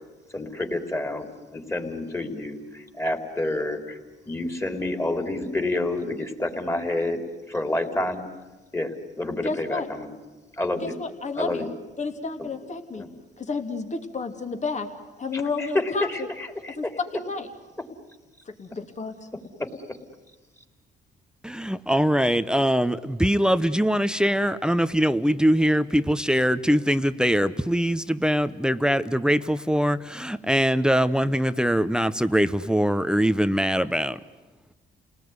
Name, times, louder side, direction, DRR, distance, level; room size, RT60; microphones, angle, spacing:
voice 1, 0.3-4.0 4.3-7.2 7.5-8.2 8.7-10.1 10.5-10.9 11.4-11.7 12.4-12.5 13.0-13.1 15.3-16.8 19.9-20.0, left 2 dB, 15° left, 6 dB, 3.7 m, -29 dB
voice 2, 9.4-9.9 10.8-11.7 12.0-13.1 13.4-14.9 15.2-16.3 16.8-16.9 17.1-17.5 18.6-19.1, left 4 dB, 35° left, 6 dB, 2.9 m, -31 dB
voice 3, 21.4-34.2, equal, 5° right, 13 dB, 0.8 m, -22 dB
30.0 x 19.0 x 9.6 m, 1.2 s
cardioid pair, 90°, 20 cm